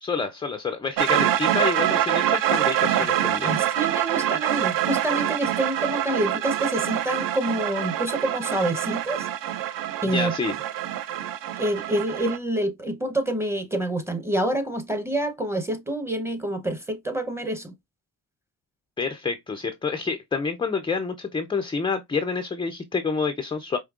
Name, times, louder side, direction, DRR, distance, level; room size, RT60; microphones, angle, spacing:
voice 1, 0.0-3.5 10.1-10.6 19.0-23.8, left 4 dB, 15° left, 0.3 m, -28 dB
sound 1, 1.0-12.4, right 12 dB, 50° right, 0.5 m, -25 dB
voice 2, 3.4-9.3 10.0-10.3 11.6-17.7, right 1 dB, 5° right, 0.7 m, -27 dB
5.1 x 2.8 x 2.3 m
cardioid pair, 95°, 44 cm